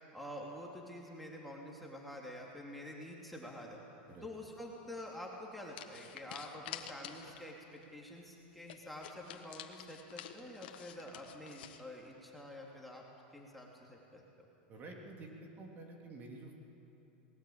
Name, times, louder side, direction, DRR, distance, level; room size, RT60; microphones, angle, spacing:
voice 1, 0.1-3.8 4.2-13.0 13.3-14.2, left 1 dB, ahead, -2 dB, 3.0 m, -48 dB
sound 1, 5.0-5.2 5.7-7.5 7.8-7.9 8.2-8.3 8.7-11.8, left 11 dB, 75° left, 1.5 m, -49 dB
voice 2, 14.7-16.6, right 2 dB, 35° right, 1 dB, 3.3 m, -49 dB
20.5 x 17.5 x 8.9 m, 2.9 s
supercardioid pair, 120°, 5 cm